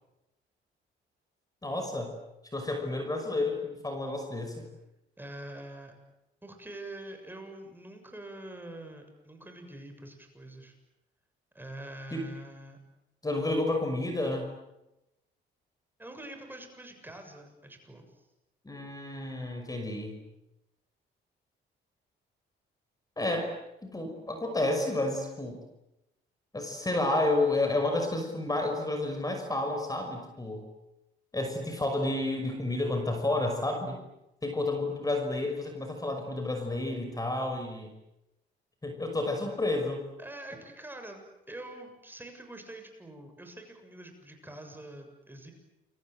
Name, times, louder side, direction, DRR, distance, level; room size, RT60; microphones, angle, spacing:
voice 1, 1.6-2.1 2.5-4.7 12.1-12.2 13.2-14.5 18.6-20.2 23.2-23.5 23.8-25.6 26.5-30.7 31.3-34.0 34.4-37.9 38.8-40.0, left 2 dB, 20° left, 4 dB, 5.9 m, -30 dB
voice 2, 5.2-5.9 6.4-10.7 11.5-12.8 16.0-18.2 40.2-45.5, right 1 dB, 10° right, 4 dB, 7.1 m, -45 dB
29.0 x 24.5 x 7.9 m, 0.91 s
cardioid pair, 90°, 20 cm